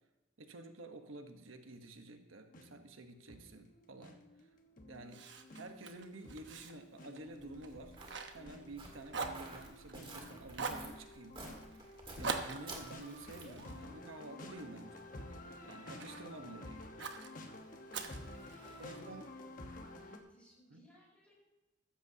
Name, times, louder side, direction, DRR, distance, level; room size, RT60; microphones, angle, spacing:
voice 1, 0.4-4.5 4.9-5.3 5.5-8.0 8.3-11.6 12.2-15.1 15.6-16.9 18.8-19.3 20.7-20.8, right 2 dB, 90° right, 6 dB, 1.1 m, -50 dB
sound 1, 2.5-20.2, left 1 dB, 40° left, 1.2 m, -52 dB
Fire, 5.1-8.8 9.1-10.1 10.5-10.9 12.2-14.6 15.2-16.3 17.0-17.3 17.9-19.0, right 4 dB, 60° right, 1.0 m, -44 dB
Walk footsteps, 7.4-13.7, right 2 dB, 25° right, 1.9 m, -52 dB
voice 2, 17.9-19.2 19.8-21.3, right 1 dB, 5° left, -4 dB, 4.6 m, -62 dB
15.0 x 13.5 x 2.8 m, 1.1 s
head